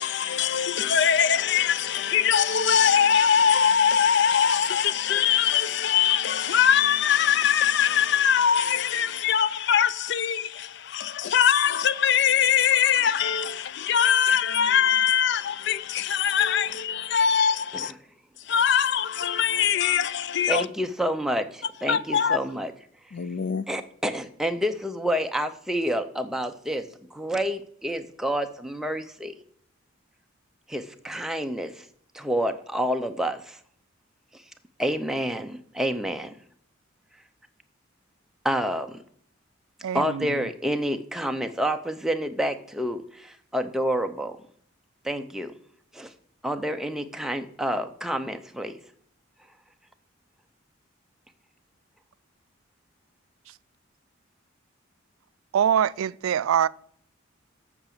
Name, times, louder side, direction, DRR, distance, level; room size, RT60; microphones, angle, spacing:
voice 1, 0.0-17.9 18.5-20.6 21.9-22.4 23.1-23.6, left 8 dB, 55° left, 0.4 m, -22 dB
voice 2, 20.5-22.7 23.7-29.3 30.7-31.9 32.1-33.6 34.3-34.4 34.8-36.3 38.4-39.0 39.9-44.4 45.0-45.5 45.9-46.1 46.4-48.8, equal, ahead, 0.6 m, -28 dB
voice 3, 39.8-40.5 53.5-53.6 55.5-56.7, right 9 dB, 80° right, 0.3 m, -24 dB
7.9 x 6.0 x 6.8 m
head